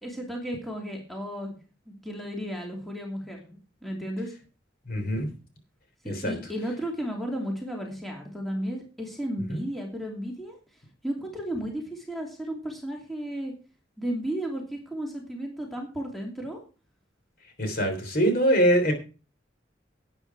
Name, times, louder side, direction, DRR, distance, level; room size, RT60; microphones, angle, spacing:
voice 1, 0.0-1.5 1.9-4.3 6.2-10.6 11.0-13.5 14.0-16.6, equal, ahead, 0 dB, 2.6 m, -34 dB
voice 2, 4.9-5.3 6.1-6.3 9.5-9.6 17.6-18.9, equal, 55° left, 5 dB, 3.5 m, -23 dB
12.0 x 9.1 x 4.7 m, 0.35 s
head